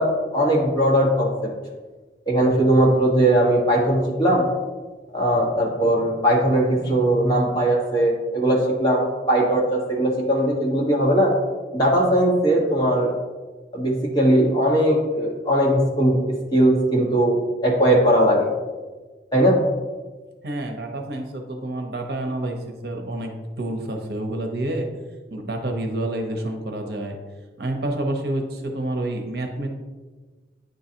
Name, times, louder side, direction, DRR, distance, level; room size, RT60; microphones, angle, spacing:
voice 1, 0.0-1.5 2.3-4.4 5.1-11.3 11.7-13.1 13.7-18.5 19.3-19.6, right 1 dB, 25° left, -3 dB, 1.3 m, -19 dB
voice 2, 20.4-24.9 25.3-27.1 27.6-29.7, right 1 dB, 65° right, 3 dB, 0.8 m, -28 dB
9.3 x 3.9 x 2.8 m, 1.3 s
head